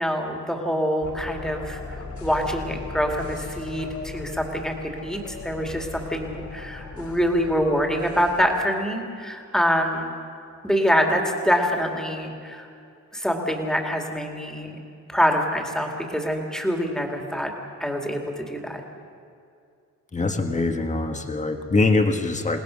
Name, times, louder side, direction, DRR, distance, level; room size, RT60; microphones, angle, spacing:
voice 1, 0.0-10.1 10.6-12.7 13.1-14.8 15.1-17.5 17.8-18.8, equal, ahead, 2 dB, 2.5 m, -25 dB
sound 1, 1.0-8.6, left 3 dB, 70° left, 3.3 m, -38 dB
voice 2, 20.1-22.6, left 3 dB, 25° left, 5 dB, 1.6 m, -23 dB
28.5 x 19.0 x 6.5 m, 2.4 s
wide cardioid pair, 175°, 30 cm